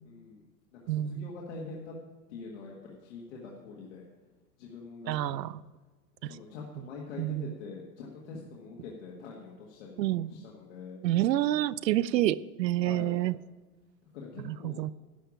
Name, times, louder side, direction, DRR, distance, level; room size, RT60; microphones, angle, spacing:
voice 1, 0.0-0.4 0.7-1.9 2.3-4.0 4.6-5.4 6.2-11.0 12.8-13.2 14.1-14.8, left 4 dB, 45° left, 1.7 m, -44 dB
voice 2, 0.9-1.3 5.1-5.5 6.2-6.4 7.2-7.5 10.0-10.3 11.0-13.3 14.5-14.9, right 13 dB, 85° right, 0.6 m, -28 dB
11.5 x 5.7 x 8.4 m
supercardioid pair, 170°, 49 cm